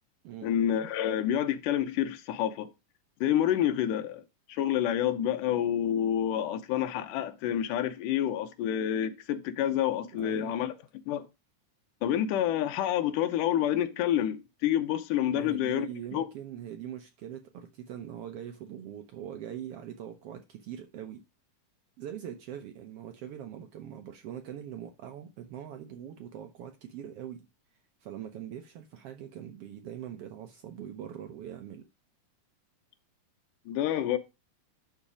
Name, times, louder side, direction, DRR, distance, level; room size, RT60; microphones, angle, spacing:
voice 1, 0.4-2.7 3.2-4.2 4.5-10.7 11.1-11.3 12.0-16.3 33.7-34.2, left 10 dB, 85° left, 2.4 m, -28 dB
voice 2, 10.2-10.5 15.3-21.2 22.0-27.5 28.0-31.9, right 10 dB, 80° right, 1.3 m, -42 dB
11.0 x 4.1 x 4.9 m
omnidirectional pair, 3.7 m